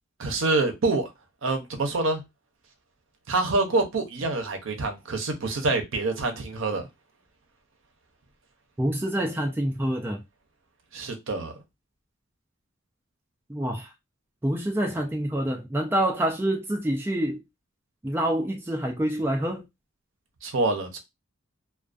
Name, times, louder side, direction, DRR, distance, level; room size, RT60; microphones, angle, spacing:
voice 1, 0.2-1.1 1.4-2.2 3.3-6.9 10.9-11.5 20.4-21.0, right 3 dB, 75° right, 0.6 m, -26 dB
voice 2, 8.8-10.2 13.5-13.9 14.4-17.4 18.0-19.6, right 1 dB, 10° right, 0.3 m, -27 dB
2.4 x 2.2 x 2.4 m
head